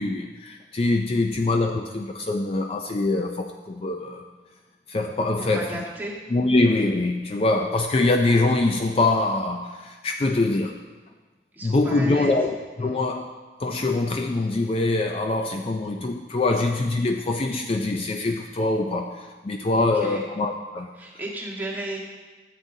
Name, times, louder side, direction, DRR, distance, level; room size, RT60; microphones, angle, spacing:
voice 1, 0.0-4.3 4.9-5.8 6.3-10.8 11.6-12.5 12.8-13.3 13.6-20.9, left 2 dB, 35° left, 3 dB, 0.4 m, -24 dB
voice 2, 5.4-6.2 11.5-12.3 12.8-13.0 19.7-20.2 21.0-22.0, right 1 dB, 10° right, -5 dB, 1.5 m, -34 dB
13.5 x 7.5 x 2.7 m, 1.3 s
head